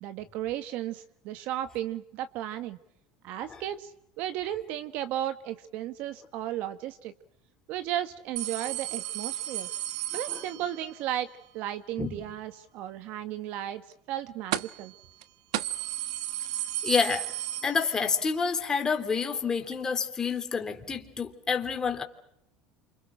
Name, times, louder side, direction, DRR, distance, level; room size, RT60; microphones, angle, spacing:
voice 1, 0.0-2.8 3.2-7.1 7.7-9.7 10.1-11.3 11.5-13.8 14.1-14.9, right 12 dB, 60° right, 10 dB, 1.4 m, -34 dB
sound 1, 8.4-11.1 14.5-14.9 15.2-15.3 15.5-18.3 18.6-18.7 19.7-19.8, right 14 dB, 85° right, 1.1 m, -34 dB
voice 2, 16.8-17.3 17.6-22.0, left 5 dB, 20° left, 5 dB, 3.2 m, -28 dB
28.0 x 27.0 x 6.3 m, 0.79 s
supercardioid pair, 130°, 3 cm